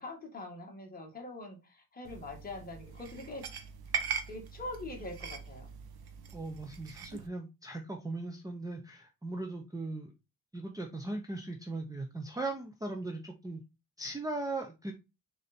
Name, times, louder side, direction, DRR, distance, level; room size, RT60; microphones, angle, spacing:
voice 1, 0.0-3.5 4.3-5.7, left 2 dB, 25° left, 1 dB, 1.9 m, -43 dB
sound 1, 2.0-7.3, right 7 dB, 75° right, 1.2 m, -41 dB
voice 2, 6.3-10.1 10.5-13.6 14.0-14.9, right 2 dB, 10° right, 4 dB, 0.7 m, -38 dB
6.7 x 4.0 x 4.3 m, 0.26 s
wide cardioid pair, 175°, 38 cm